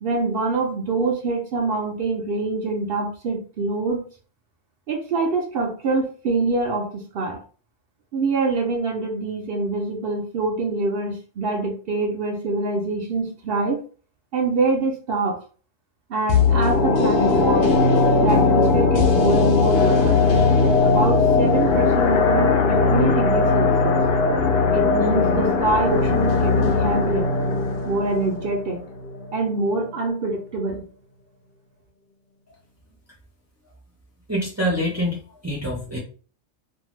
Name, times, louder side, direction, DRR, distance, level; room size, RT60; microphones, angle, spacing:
voice 1, 0.0-4.1 4.9-7.4 8.1-13.8 14.3-15.4 16.1-17.8 18.2-20.2 20.8-24.0 24.7-27.3 27.9-28.9 29.3-30.9, right 3 dB, 60° right, 2 dB, 0.7 m, -25 dB
sound 1, 16.3-29.4 29.7-29.8, left 4 dB, 60° left, 0.7 m, -19 dB
voice 2, 34.3-36.0, equal, 20° right, -3 dB, 0.5 m, -25 dB
2.6 x 2.2 x 3.1 m, 0.39 s
omnidirectional pair, 1.3 m